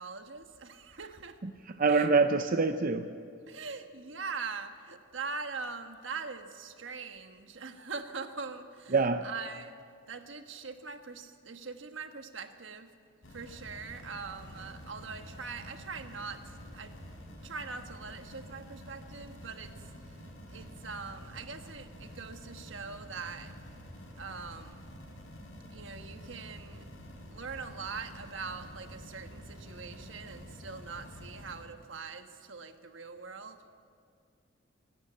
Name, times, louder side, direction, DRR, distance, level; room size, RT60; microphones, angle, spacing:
voice 1, 0.0-1.4 1.9-2.1 3.5-8.9 9.2-12.9 13.3-17.0 17.4-20.2 20.5-23.5 24.2-24.9 25.7-26.8 27.3-33.6, right 4 dB, 70° right, 7 dB, 1.4 m, -42 dB
voice 2, 1.4-3.1 8.9-9.3, right 4 dB, 45° right, 7 dB, 0.7 m, -26 dB
sound 1, 13.2-31.6, equal, 85° left, 5.1 m, -48 dB
26.0 x 12.0 x 8.6 m, 2.3 s
head